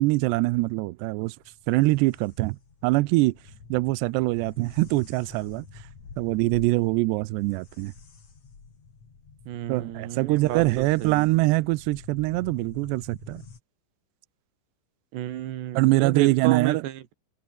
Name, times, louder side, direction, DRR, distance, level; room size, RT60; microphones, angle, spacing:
voice 1, 0.0-1.4 1.7-2.6 2.8-3.4 3.7-5.8 6.2-7.9 9.7-13.4 15.7-16.8, right 21 dB, 80° right, 2.4 m, -23 dB
sound 1, 1.0-13.6, left 5 dB, 35° left, 5.2 m, -48 dB
voice 2, 9.5-11.2 15.1-17.1, right 12 dB, 65° right, 3.8 m, -32 dB
omnidirectional pair, 5.6 m